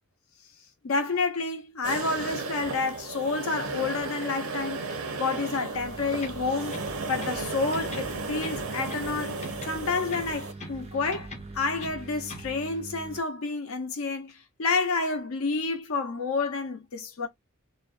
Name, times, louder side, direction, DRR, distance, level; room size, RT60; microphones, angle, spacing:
voice 1, 0.8-6.8 7.1-11.3 11.5-17.3, left 4 dB, 70° left, 0.6 m, -29 dB
sound 1, 1.8-10.5, right 3 dB, 70° right, 0.6 m, -35 dB
sound 2, 5.7-13.2, right 3 dB, 30° right, 0.3 m, -43 dB
sound 3, 6.2-7.5 7.7-9.2 9.4-10.8 11.1-12.5, left 2 dB, 35° left, 0.7 m, -43 dB
2.4 x 2.1 x 2.4 m
head